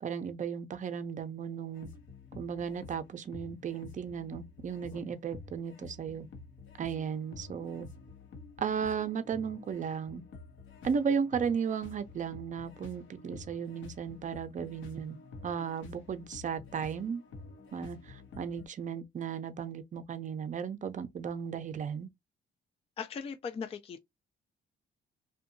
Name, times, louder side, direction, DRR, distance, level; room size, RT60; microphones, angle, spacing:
voice 1, 0.0-1.9 2.4-6.3 6.8-7.9 8.6-10.2 10.8-15.2 15.4-17.2 17.7-22.1, right 7 dB, 40° right, 0.5 m, -35 dB
sound 1, 1.7-18.7, left 3 dB, 70° left, 0.8 m, -50 dB
voice 2, 23.0-24.0, left 6 dB, 30° left, 0.3 m, -39 dB
2.6 x 2.2 x 2.5 m
cardioid pair, 90°, 20 cm